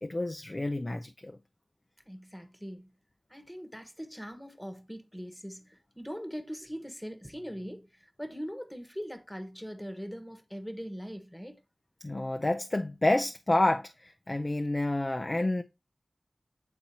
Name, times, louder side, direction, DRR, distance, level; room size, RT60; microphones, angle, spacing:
voice 1, 0.0-1.4 12.0-15.6, left 2 dB, 35° left, 0.5 m, -29 dB
voice 2, 2.1-2.9 3.3-11.6, equal, 5° left, 1.1 m, -41 dB
8.4 x 4.2 x 2.8 m
wide cardioid pair, 65°, 0 cm